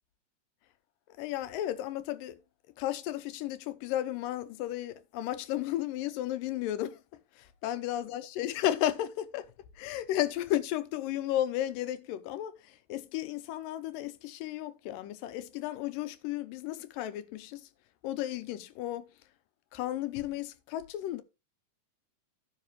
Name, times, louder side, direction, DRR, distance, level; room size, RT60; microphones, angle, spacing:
voice 1, 1.2-2.4 2.8-7.0 7.4-9.5 9.8-17.7 18.0-19.1 19.7-21.2, left 13 dB, 80° left, 2.4 m, -34 dB
14.5 x 5.8 x 3.0 m
omnidirectional pair, 4.0 m